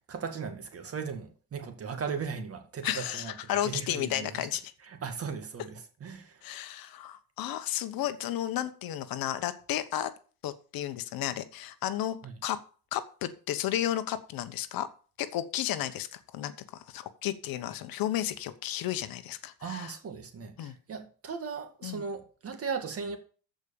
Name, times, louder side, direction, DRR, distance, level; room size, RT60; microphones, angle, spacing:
voice 1, 0.1-4.5 4.8-6.4 12.2-12.3 19.6-23.2, right 6 dB, 35° right, 2.0 m, -37 dB
voice 2, 2.8-4.6 6.4-10.1 10.4-12.2 12.4-12.6 12.9-14.9 15.2-19.9 20.6-20.7 21.8-22.0, left 12 dB, 55° left, 1.0 m, -33 dB
14.0 x 5.1 x 6.9 m
cardioid pair, 130°, 41 cm